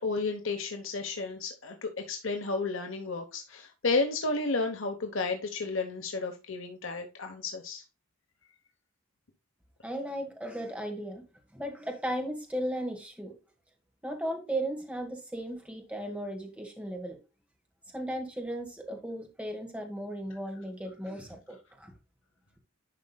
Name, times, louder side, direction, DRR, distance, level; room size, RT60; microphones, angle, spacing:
voice 1, 0.0-7.8, left 3 dB, 65° left, 1.1 m, -32 dB
voice 2, 9.8-11.2 11.5-13.3 14.0-17.2 17.9-21.9, right 1 dB, 5° right, 1.5 m, -36 dB
11.0 x 5.3 x 2.3 m
head